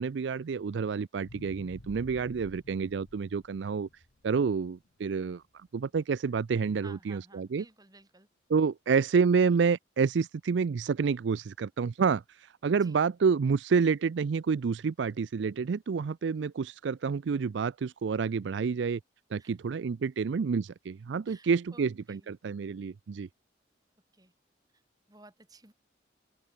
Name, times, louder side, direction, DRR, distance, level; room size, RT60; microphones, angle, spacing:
voice 1, 0.0-3.9 4.2-5.4 5.7-7.6 8.5-12.2 12.6-19.0 19.3-23.3, right 5 dB, 75° right, 0.4 m, -28 dB
sound 1, 1.1-5.4 5.9-6.0, left 1 dB, 80° left, 2.2 m, -52 dB
voice 2, 6.8-8.3 12.7-13.0 19.4-19.6 21.3-22.3 24.1-24.3 24.7-24.8 25.1-25.7, right 2 dB, 20° right, 5.1 m, -56 dB
open air
head